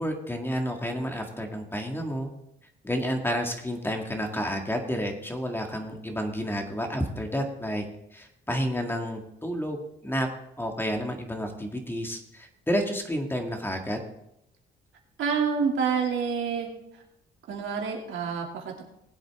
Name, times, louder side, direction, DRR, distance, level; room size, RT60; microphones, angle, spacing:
voice 1, 0.0-2.3 2.8-7.8 8.1-10.3 10.6-14.0, equal, 10° left, 3 dB, 1.9 m, -30 dB
voice 2, 15.2-16.7 17.5-18.8, right 6 dB, 75° right, 0 dB, 2.7 m, -28 dB
20.0 x 7.9 x 3.7 m, 0.81 s
cardioid pair, 90°, 20 cm